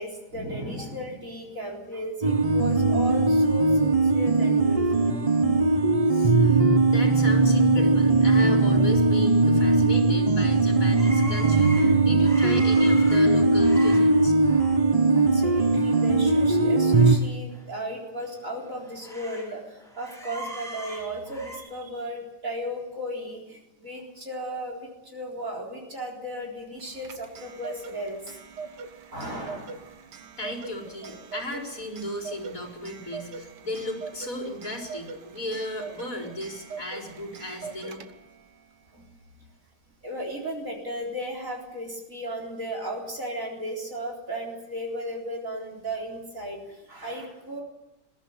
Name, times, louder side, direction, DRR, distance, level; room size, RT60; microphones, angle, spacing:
voice 1, 0.0-5.2 6.1-6.3 15.1-28.4 29.1-29.8 31.0-31.2 38.9-39.0 40.0-47.6, equal, 50° right, -1 dB, 4.5 m, -35 dB
sound 1, 2.2-17.2, right 3 dB, 25° right, 0.8 m, -20 dB
voice 2, 6.9-14.3 30.4-38.0, left 1 dB, 50° left, 0 dB, 4.9 m, -35 dB
sound 2, 11.0-14.8 15.2-15.4 15.7-17.2 17.5-17.6 18.2-19.5 19.8-21.6, right 1 dB, ahead, 7.2 m, -41 dB
Clock, 26.8-38.4, right 5 dB, 75° right, 1.8 m, -42 dB
21.5 x 14.5 x 9.5 m, 0.98 s
omnidirectional pair, 1.8 m